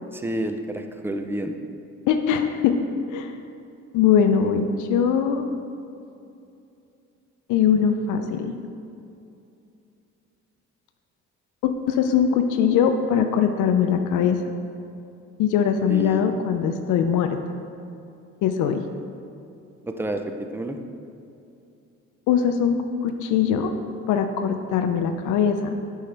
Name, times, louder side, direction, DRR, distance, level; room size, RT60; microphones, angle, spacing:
voice 1, 0.1-1.6 15.9-16.3 19.8-20.8, right 1 dB, 10° right, 6 dB, 0.4 m, -29 dB
voice 2, 2.1-2.8 3.1-3.3 3.9-5.5 7.5-8.6 11.6-14.4 15.4-17.4 18.4-18.8 22.3-23.7 24.1-25.8, left 7 dB, 80° left, 7 dB, 0.5 m, -21 dB
8.1 x 5.5 x 3.3 m, 2.7 s
cardioid pair, 90°, 30 cm